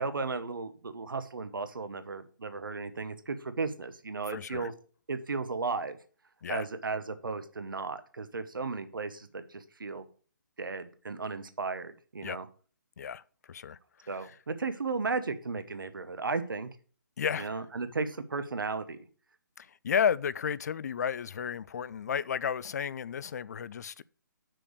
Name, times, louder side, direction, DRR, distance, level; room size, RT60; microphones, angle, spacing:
voice 1, 0.0-4.7 5.1-6.0 6.5-10.0 10.6-12.5 14.1-16.7 17.4-19.0, right 4 dB, 90° right, 1.0 m, -35 dB
voice 2, 4.3-4.7 6.4-6.7 12.2-12.4 13.0-13.2 13.5-14.3 17.2-17.6 19.6-24.0, left 7 dB, 55° left, 0.4 m, -33 dB
6.0 x 5.1 x 6.3 m
hypercardioid pair, 155°, 11 cm